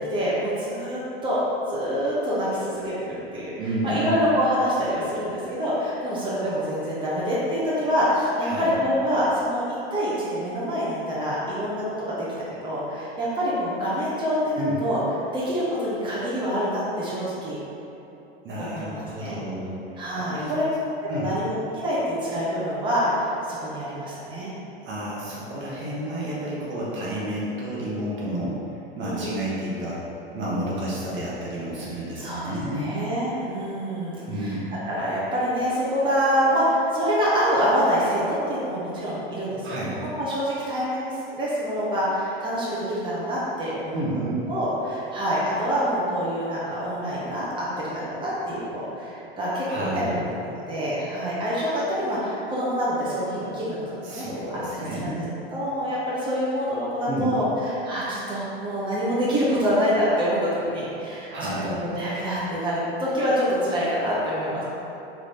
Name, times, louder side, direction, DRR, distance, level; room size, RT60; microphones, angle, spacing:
voice 1, 0.1-1.4 1.7-3.5 3.8-12.1 12.6-15.0 15.3-17.6 18.6-19.4 20.0-20.6 21.0-24.5 29.0-29.4 32.2-34.6 34.8-44.0 44.5-54.3 54.7-55.1 55.5-64.6, equal, 15° right, -8 dB, 1.0 m, -26 dB
voice 2, 3.6-4.2 8.4-8.7 14.5-14.7 18.4-20.5 21.1-21.3 24.8-28.5 29.0-30.0 30.3-33.0 34.3-34.8 39.6-40.0 43.9-44.4 49.6-50.3 54.0-55.4 57.0-57.3 61.3-61.9, right 1 dB, 40° right, -6 dB, 1.1 m, -30 dB
3.3 x 3.1 x 4.1 m, 2.9 s
hypercardioid pair, 95°, 30 cm